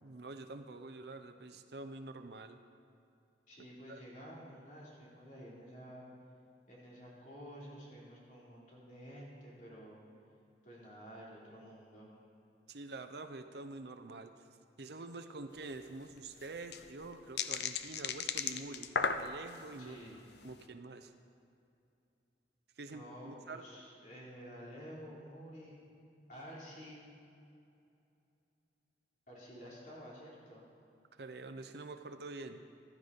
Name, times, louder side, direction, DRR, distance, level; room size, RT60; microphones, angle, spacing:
voice 1, 0.0-2.6 3.9-4.0 12.7-14.5 14.8-20.0 20.4-21.1 22.8-23.8 31.1-32.6, right 3 dB, 65° right, 9 dB, 0.7 m, -47 dB
voice 2, 3.5-6.0 6.7-10.0 10.6-12.1 19.8-20.2 22.9-25.8 26.3-27.1 29.3-30.6, equal, 45° left, -5 dB, 3.3 m, -51 dB
sound 1, 15.6-15.7 15.9-16.0 16.4-19.7 20.2-20.5, left 6 dB, 70° left, 0.6 m, -35 dB
15.0 x 12.0 x 4.1 m, 2.6 s
head